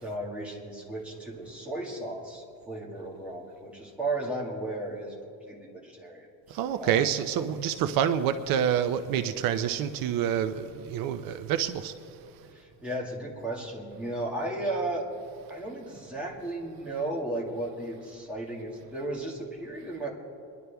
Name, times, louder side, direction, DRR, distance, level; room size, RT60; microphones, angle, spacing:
voice 1, 0.0-5.1 5.5-5.6 5.8-7.1 12.5-15.1 15.5-20.1, right 2 dB, 5° right, -5 dB, 2.1 m, -35 dB
voice 2, 6.5-11.9, right 9 dB, 70° right, 9 dB, 0.7 m, -27 dB
25.5 x 11.0 x 3.5 m, 2.7 s
cardioid pair, 180°, 35 cm